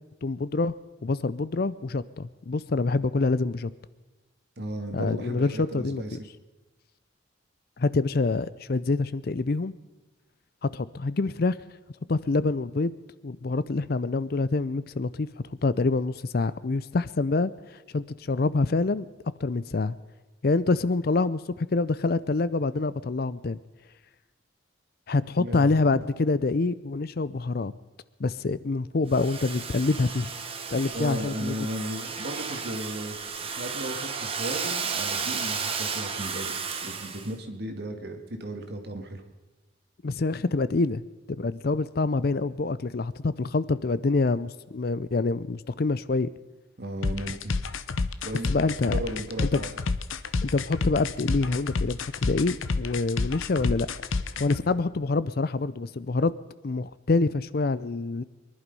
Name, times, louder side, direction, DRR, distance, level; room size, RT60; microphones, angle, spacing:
voice 1, 0.2-0.7 1.0-3.7 4.9-6.0 7.8-9.7 10.6-11.6 12.1-13.0 13.2-15.3 15.6-19.1 19.4-20.0 20.4-23.6 25.1-27.7 28.2-30.3 30.7-31.6 40.0-41.0 41.4-46.3 48.5-49.0 49.5-49.6 50.4-53.9 54.4-56.3 56.6-58.2, left 3 dB, 50° left, 17 dB, 0.5 m, -26 dB
voice 2, 4.6-6.1 25.4-25.7 30.9-36.6 36.8-39.2 46.8-47.5 48.2-48.5 48.9-49.7, right 1 dB, 55° right, 5 dB, 2.0 m, -35 dB
Domestic sounds home sounds, 29.1-37.3, right 5 dB, 30° right, 1.2 m, -33 dB
sound 1, 47.0-54.6, left 3 dB, 85° left, 0.7 m, -29 dB
23.5 x 11.0 x 5.4 m, 1.2 s
head